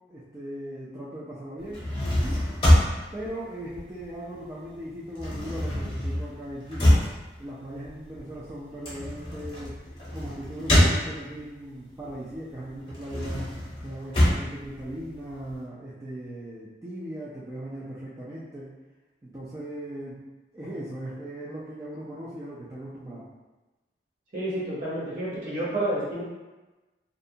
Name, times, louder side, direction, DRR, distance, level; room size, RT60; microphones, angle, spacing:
voice 1, 0.1-1.9 2.7-6.9 7.4-9.8 10.1-13.4 13.8-18.7 19.2-20.2 20.5-23.3, right 1 dB, 20° right, -9 dB, 0.3 m, -38 dB
sound 1, 1.6-4.4 4.7-11.5 12.0-15.5, left 1 dB, 30° left, 0.7 m, -25 dB
voice 2, 24.3-26.2, right 1 dB, 45° right, -8 dB, 0.9 m, -29 dB
2.5 x 2.1 x 2.7 m, 1.1 s
head